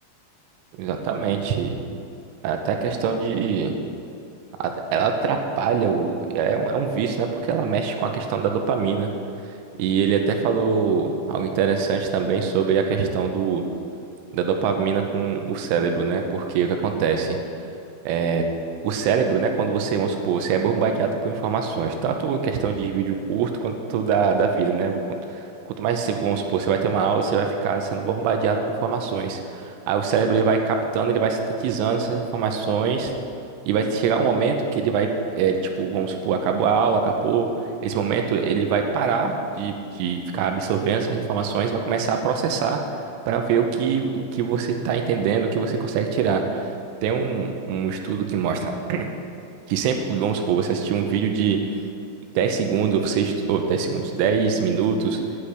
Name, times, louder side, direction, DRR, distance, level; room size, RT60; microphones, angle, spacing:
voice 1, 0.8-1.8 2.4-3.7 4.6-9.1 9.8-13.6 14.3-17.4 18.1-18.4 18.8-24.9 25.3-33.1 33.7-35.1 35.4-37.5 37.8-42.8 43.3-46.7 47.0-49.1 49.7-51.6 52.4-55.2, right 6 dB, 85° right, 4 dB, 3.2 m, -23 dB
17.0 x 9.7 x 3.4 m, 2.6 s
omnidirectional pair, 5.9 m